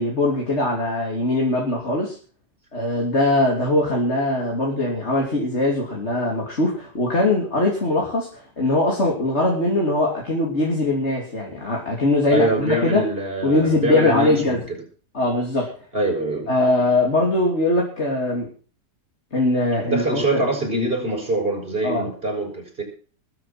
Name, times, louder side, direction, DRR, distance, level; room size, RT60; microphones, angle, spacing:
voice 1, 0.0-2.2 2.7-13.1 13.4-14.7 15.1-15.7 16.5-18.5 19.3-20.4 21.8-22.1, left 2 dB, 40° left, 3.4 m, -21 dB
voice 2, 12.3-14.8 15.9-16.5 19.8-22.8, right 1 dB, 30° right, 6.8 m, -24 dB
21.0 x 8.2 x 6.1 m
omnidirectional pair, 1.9 m